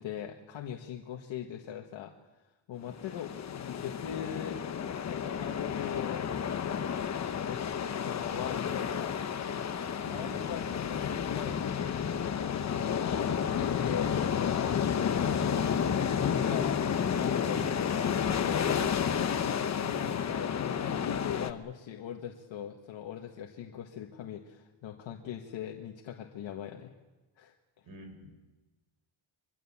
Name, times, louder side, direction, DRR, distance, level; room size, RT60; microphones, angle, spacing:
voice 1, 0.0-2.1 2.7-4.6 4.9-6.3 7.4-7.6 7.9-9.2 10.1-11.9 12.6-15.3 15.6-16.8 17.1-17.7 18.1-18.8 19.4-26.9 27.4-27.5, left 9 dB, 75° left, 2 dB, 1.8 m, -40 dB
sound 1, 2.9-21.5, left 7 dB, 35° left, 1.1 m, -31 dB
voice 2, 10.0-10.4 17.5-17.7 27.8-28.4, equal, 50° right, 5 dB, 6.4 m, -44 dB
24.0 x 23.0 x 7.4 m, 1.2 s
cardioid pair, 160°, 46 cm